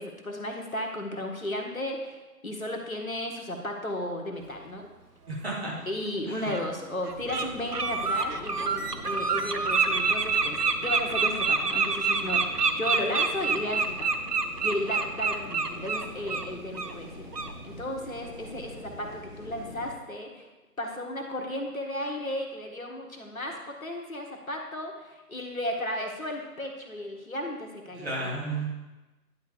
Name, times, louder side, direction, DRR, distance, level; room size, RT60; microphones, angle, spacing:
voice 1, 0.0-4.9 5.9-14.1 14.6-17.2 17.6-20.5 20.8-28.4, left 1 dB, 60° left, 2 dB, 1.5 m, -34 dB
voice 2, 5.3-5.7 6.3-6.5 28.0-28.7, right 2 dB, 40° right, -4 dB, 2.5 m, -32 dB
Bird, 5.6-5.7 6.5-6.6 7.0-7.4 7.7-16.4 16.7-16.9 17.3-17.5, right 5 dB, 80° right, 0.9 m, -27 dB
sound 1, 7.1-19.9, left 1 dB, 30° left, 2.4 m, -44 dB
10.5 x 4.6 x 4.9 m, 1.1 s
figure-of-eight pair, 155°, 46 cm